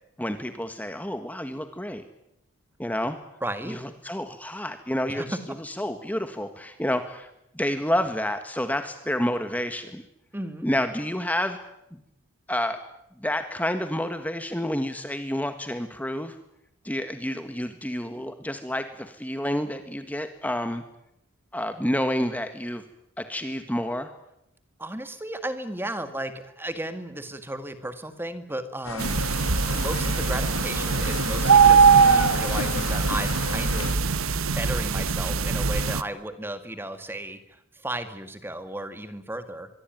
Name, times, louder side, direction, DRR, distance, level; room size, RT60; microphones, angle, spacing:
voice 1, 0.2-2.0 2.8-3.2 3.7-7.3 7.5-10.0 10.6-11.6 11.9-12.0 12.5-12.8 13.2-16.4 16.8-20.8 21.5-22.8 23.2-24.1, left 1 dB, 5° left, 8 dB, 1.6 m, -29 dB
voice 2, 3.4-3.8 5.1-5.4 10.3-10.7 24.8-29.2 29.7-39.7, right 1 dB, 10° right, 9 dB, 1.9 m, -34 dB
sound 1, 28.8-33.9, left 4 dB, 75° left, 2.0 m, -34 dB
sound 2, 29.0-36.0, right 5 dB, 80° right, 1.1 m, -21 dB
24.5 x 23.5 x 9.3 m, 0.82 s
head